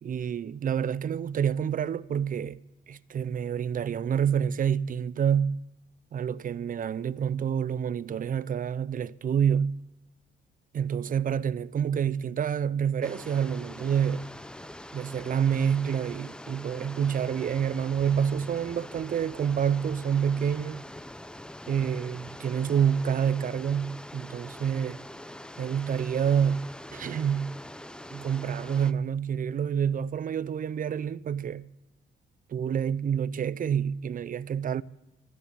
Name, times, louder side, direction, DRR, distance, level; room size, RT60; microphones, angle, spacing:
voice 1, 0.0-2.6 2.9-5.6 6.1-9.8 10.7-14.3 14.9-20.9 21.7-25.0 25.6-27.6 28.1-31.7 32.5-34.8, right 8 dB, 45° right, 0.5 m, -28 dB
sound 1, 13.0-28.9, left 1 dB, 5° left, 0.6 m, -44 dB
13.0 x 12.5 x 8.4 m
cardioid pair, 90°, 20 cm